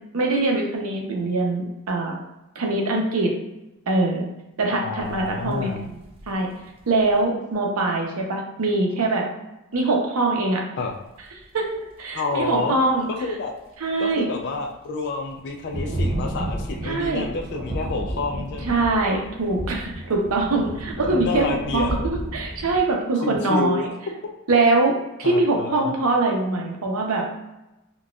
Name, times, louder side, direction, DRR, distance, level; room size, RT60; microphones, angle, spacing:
voice 1, 0.1-2.1 2.6-3.3 3.9-4.3 4.6-5.9 6.3-6.5 6.9-9.2 9.7-10.6 11.5-13.1 13.8-14.3 16.8-17.2 18.7-23.9 24.5-24.9 25.2-27.2, right 2 dB, 85° right, 0 dB, 0.7 m, -23 dB
voice 2, 4.7-5.8 10.8-10.9 12.1-12.8 13.1-13.5 14.0-18.9 21.0-22.1 23.2-23.9 25.2-26.0, left 4 dB, 50° left, 2 dB, 0.3 m, -29 dB
sound 1, 5.0-7.2 10.8-11.2 11.7-12.0 13.2-13.3 14.1-14.2 14.4-14.7 15.3-22.8, right 1 dB, 25° right, 0.4 m, -32 dB
3.9 x 2.3 x 2.3 m, 0.96 s
head